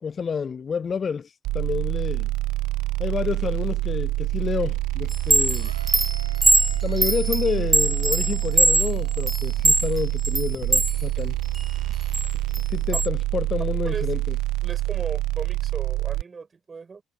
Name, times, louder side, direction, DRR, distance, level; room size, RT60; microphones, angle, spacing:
voice 1, 0.0-2.3 3.0-5.7 6.8-11.4 12.7-14.3, left 6 dB, 40° left, 0.5 m, -29 dB
sound 1, 1.4-16.2, right 17 dB, 65° right, 1.0 m, -26 dB
Chime, 5.1-11.0 11.4-13.1, right 2 dB, 15° right, 0.7 m, -22 dB
sound 2, 5.6-9.7, right 5 dB, 90° right, 4.6 m, -46 dB
voice 2, 14.6-17.0, right 5 dB, 35° right, 5.4 m, -36 dB
figure-of-eight pair, 45°, 0 cm